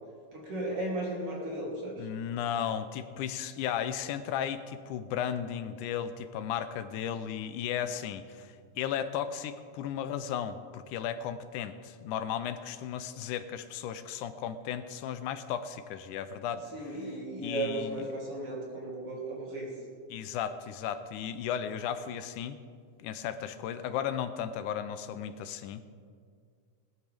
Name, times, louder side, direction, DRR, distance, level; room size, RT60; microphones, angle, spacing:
voice 1, 0.3-2.1 16.7-19.7, right 1 dB, 50° right, -4 dB, 4.0 m, -35 dB
voice 2, 2.0-16.7 17.4-18.1 20.1-22.6 23.0-25.9, left 9 dB, 85° left, 11 dB, 2.1 m, -35 dB
19.5 x 13.5 x 3.5 m, 2.1 s
omnidirectional pair, 3.5 m